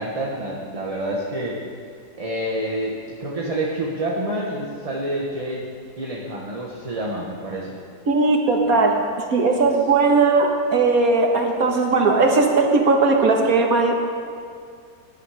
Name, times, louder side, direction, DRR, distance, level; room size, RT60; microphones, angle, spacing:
voice 1, 0.0-1.6 2.2-5.7 6.0-7.8 8.8-9.1, right 1 dB, 25° right, -3 dB, 1.3 m, -28 dB
voice 2, 8.1-9.0 9.3-14.0, right 3 dB, 60° right, 2 dB, 2.0 m, -18 dB
18.5 x 11.5 x 5.0 m, 2.2 s
omnidirectional pair, 1.8 m